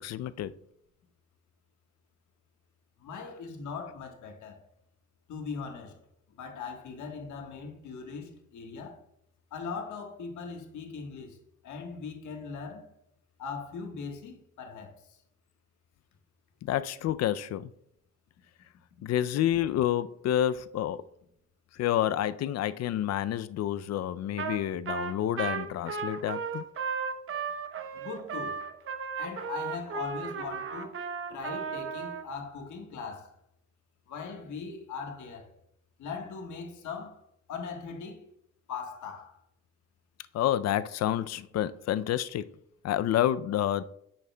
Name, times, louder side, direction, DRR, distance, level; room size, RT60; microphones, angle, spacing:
voice 1, 0.0-0.5 16.6-17.7 19.0-21.0 21.7-26.6 40.3-42.4 42.8-43.8, left 11 dB, 60° left, 0.4 m, -29 dB
voice 2, 3.0-4.7 5.3-9.1 9.5-11.4 11.6-12.9 13.4-15.2 27.9-28.6 29.2-31.0 31.3-33.4 34.1-35.5 36.0-37.2 37.5-38.3 38.7-39.4, left 5 dB, 75° left, 1.4 m, -40 dB
Trumpet, 24.4-24.6 24.9-32.2, right 6 dB, 45° right, 0.8 m, -35 dB
9.0 x 6.5 x 2.2 m
cardioid pair, 90°, 30 cm